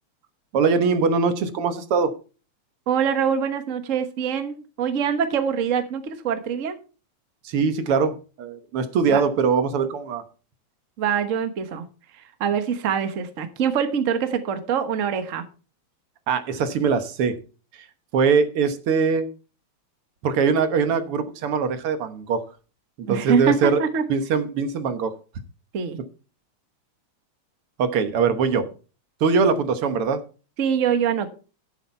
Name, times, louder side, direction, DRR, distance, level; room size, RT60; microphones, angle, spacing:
voice 1, 0.5-2.1 7.4-10.2 16.3-17.3 18.1-19.3 20.2-22.4 23.0-23.8 24.1-25.1 27.8-28.7 29.2-30.2, right 5 dB, 60° right, 10 dB, 1.8 m, -22 dB
voice 2, 2.9-6.8 9.1-9.2 11.0-11.8 12.4-15.4 23.1-24.0 25.7-26.0 30.6-31.3, right 7 dB, 90° right, 9 dB, 0.7 m, -24 dB
11.0 x 8.6 x 4.4 m, 0.35 s
omnidirectional pair, 3.4 m